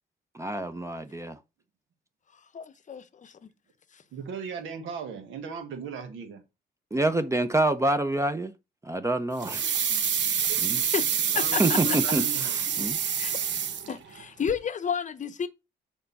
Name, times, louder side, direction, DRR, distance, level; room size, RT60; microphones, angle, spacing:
voice 1, 0.3-1.4 6.9-8.5 8.8-9.7 10.6-10.8 11.6-13.0, right 2 dB, 15° right, 0.6 m, -27 dB
voice 2, 2.5-3.5 3.9-4.0 10.8-11.0 11.3-12.0 12.7-12.8 13.2-13.4 13.9-15.5, left 7 dB, 40° left, 0.8 m, -31 dB
voice 3, 4.1-6.4 11.3-12.7, right 6 dB, 80° right, 1.6 m, -37 dB
sound 1, 9.4-14.2 14.5-14.6, right 8 dB, 65° right, 1.1 m, -27 dB
6.6 x 4.5 x 4.1 m
cardioid pair, 90°, 20 cm